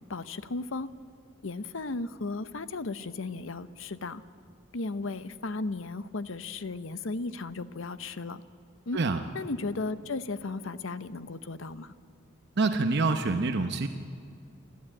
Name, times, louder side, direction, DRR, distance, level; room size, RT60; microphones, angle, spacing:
voice 1, 0.1-0.9 1.4-4.2 4.7-8.4 8.9-9.0 9.3-11.9, left 3 dB, 65° left, 14 dB, 0.8 m, -35 dB
voice 2, 12.6-13.9, right 3 dB, 55° right, 7 dB, 0.9 m, -26 dB
29.0 x 12.5 x 8.8 m, 2.4 s
head